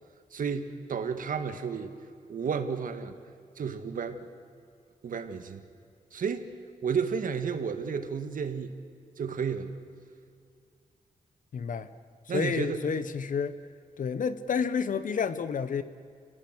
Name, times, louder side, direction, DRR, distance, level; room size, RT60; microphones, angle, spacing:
voice 1, 0.3-2.0 2.3-3.1 3.6-4.3 5.0-5.6 6.1-6.5 6.8-8.8 9.2-9.7 12.3-12.8, right 6 dB, 75° right, 9 dB, 1.7 m, -32 dB
voice 2, 11.5-11.9 12.3-13.6 14.0-15.8, left 6 dB, 70° left, 13 dB, 1.1 m, -30 dB
29.0 x 18.5 x 8.1 m, 2.3 s
wide cardioid pair, 155°, 14 cm